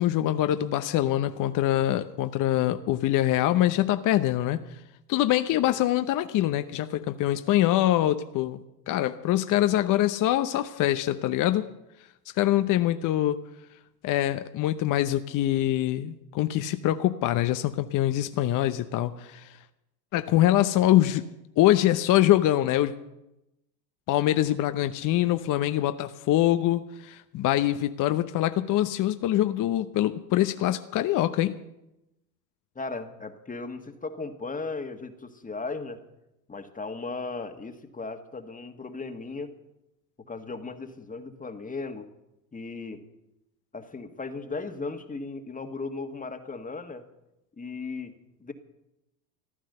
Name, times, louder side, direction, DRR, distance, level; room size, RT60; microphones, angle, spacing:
voice 1, 0.0-4.6 5.1-8.6 8.9-11.7 12.4-13.4 14.0-19.6 20.1-21.2 21.6-22.9 24.1-31.6, left 13 dB, 40° left, 10 dB, 0.8 m, -24 dB
voice 2, 32.7-36.0 36.5-39.5 40.3-42.1 42.5-43.0 43.7-47.0 47.6-48.1 48.4-48.5, left 3 dB, 15° left, 7 dB, 1.6 m, -36 dB
14.5 x 12.0 x 6.7 m, 0.91 s
hypercardioid pair, 85°, 50 cm